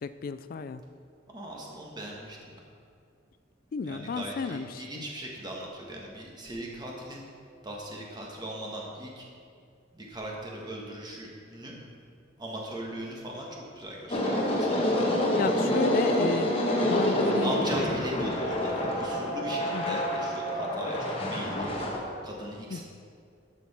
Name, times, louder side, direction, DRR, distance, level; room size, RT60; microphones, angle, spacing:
voice 1, 0.0-0.8 3.7-5.1 15.3-16.5 16.8-17.5 19.7-20.0 22.7-22.8, left 5 dB, 50° left, 13 dB, 0.3 m, -33 dB
voice 2, 1.3-2.4 3.8-7.2 7.6-9.2 9.9-11.8 12.4-15.2 17.2-21.8 22.2-22.8, right 1 dB, 25° right, -2 dB, 1.4 m, -38 dB
sound 1, 14.1-22.0, left 1 dB, 30° left, 1.2 m, -27 dB
11.5 x 6.0 x 4.3 m, 2.3 s
head